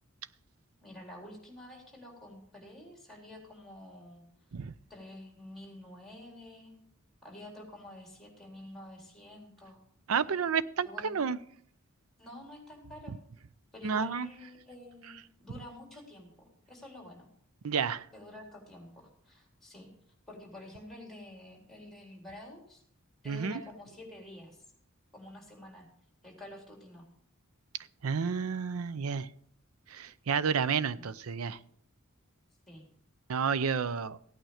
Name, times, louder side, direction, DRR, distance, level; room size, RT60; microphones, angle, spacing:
voice 1, 0.8-4.2 4.9-6.7 7.2-9.8 10.8-11.3 12.2-13.1 13.7-15.1 15.4-17.3 18.1-19.9 20.3-22.8 23.2-24.6 25.1-25.9 26.2-27.0 30.9-31.1 32.7-32.8, left 1 dB, ahead, 0 dB, 3.8 m, -49 dB
voice 2, 10.1-11.4 13.8-14.3 17.6-18.0 23.3-23.6 28.0-29.3 29.9-31.6 33.3-34.2, right 6 dB, 85° right, 16 dB, 0.5 m, -30 dB
15.5 x 9.1 x 4.9 m, 0.63 s
head